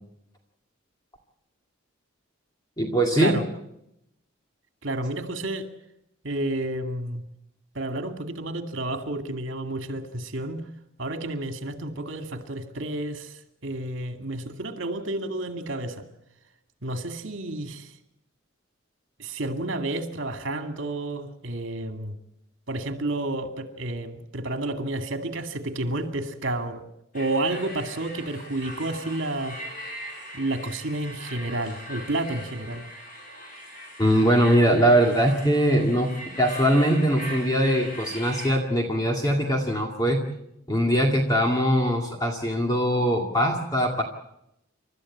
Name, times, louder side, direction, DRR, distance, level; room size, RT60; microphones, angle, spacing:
voice 1, 2.8-3.4 34.0-36.1 36.4-40.2 40.7-44.0, equal, 20° left, 2 dB, 2.1 m, -21 dB
voice 2, 4.8-5.7 6.2-7.2 7.7-10.6 11.0-16.1 16.8-17.9 19.2-22.1 22.7-26.8 27.1-29.6 30.3-32.9, right 2 dB, 60° right, 7 dB, 2.4 m, -30 dB
sound 1, 27.1-38.6, equal, 40° left, 5.8 m, -40 dB
29.0 x 13.5 x 8.6 m, 0.81 s
head